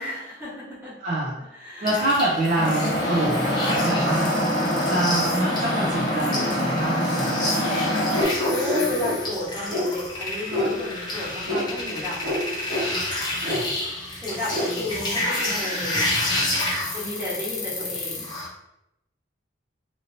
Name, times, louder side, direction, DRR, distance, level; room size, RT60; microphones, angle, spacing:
voice 1, 0.0-1.0 1.4-1.9 8.4-12.4 14.2-16.1 16.9-18.3, left 1 dB, 10° right, -10 dB, 1.3 m, -32 dB
voice 2, 1.0-1.4 1.8-4.3 4.8-7.4 13.4-13.7, right 1 dB, 40° right, -6 dB, 0.5 m, -26 dB
sound 1, 1.8-18.5, left 1 dB, 25° left, 0.6 m, -30 dB
sound 2, 2.5-8.2, equal, 70° left, 0.9 m, -24 dB
sound 3, 8.1-9.2 9.7-9.9 10.5-10.7 11.5-11.6 12.2-12.4 12.7-12.9 13.4-13.6 14.5-14.7, left 1 dB, 90° right, 1.3 m, -26 dB
2.9 x 2.7 x 2.6 m, 0.88 s
head